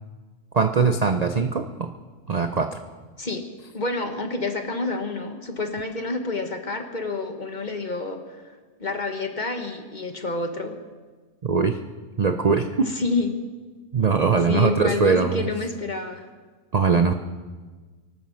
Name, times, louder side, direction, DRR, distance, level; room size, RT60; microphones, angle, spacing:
voice 1, 0.5-1.9 2.3-2.8 11.4-11.8 12.2-12.9 13.9-15.5 16.7-17.1, right 5 dB, 55° right, 7 dB, 0.4 m, -21 dB
voice 2, 3.7-10.8 12.9-13.3 14.5-16.3, left 3 dB, 30° left, 6 dB, 1.3 m, -28 dB
24.0 x 9.3 x 6.3 m, 1.4 s
omnidirectional pair, 1.6 m